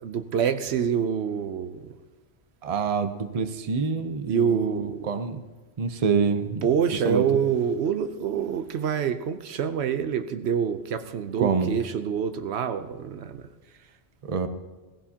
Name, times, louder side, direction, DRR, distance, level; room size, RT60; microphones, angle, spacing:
voice 1, 0.0-1.9 4.3-5.0 6.6-13.4, right 7 dB, 85° right, 10 dB, 1.0 m, -26 dB
voice 2, 2.6-5.4 5.8-6.7 7.0-7.2 11.4-11.7 14.2-14.5, right 5 dB, 40° right, 9 dB, 0.7 m, -26 dB
18.0 x 15.5 x 2.9 m, 1.2 s
omnidirectional pair, 1.1 m